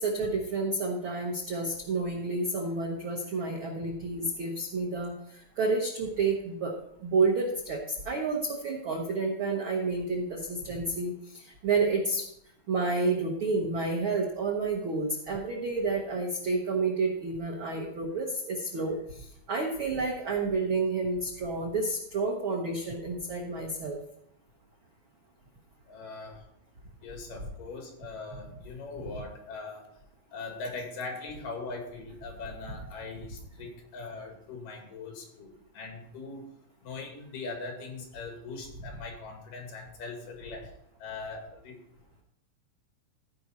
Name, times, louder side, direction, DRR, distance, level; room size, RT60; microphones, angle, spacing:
voice 1, 0.0-5.1 5.6-6.7 7.0-12.2 12.7-19.0 19.5-24.0, right 3 dB, 90° right, 1 dB, 1.1 m, -30 dB
voice 2, 25.9-26.5 27.0-29.9 30.3-36.5 36.8-40.7 41.0-41.8, left 3 dB, 70° left, 2 dB, 3.4 m, -41 dB
15.5 x 5.2 x 4.1 m, 0.73 s
omnidirectional pair, 4.0 m